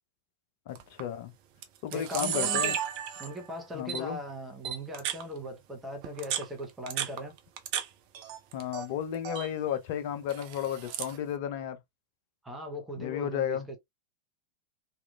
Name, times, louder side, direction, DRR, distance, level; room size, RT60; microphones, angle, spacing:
voice 1, 0.7-1.3 1.8-2.8 3.7-4.2 8.5-11.8 13.0-13.7, left 10 dB, 50° left, 0.5 m, -33 dB
Camera, 0.7-1.0 1.6-1.7 1.9-3.5 3.9-4.0 4.6-5.2 6.0-7.8 8.1-8.9 9.1-9.5 10.3-11.2, right 9 dB, 45° right, 0.5 m, -33 dB
voice 2, 1.9-2.8 3.2-7.3 12.4-13.8, equal, 10° right, 0.8 m, -39 dB
2.8 x 2.4 x 2.2 m
figure-of-eight pair, 90°, 0 cm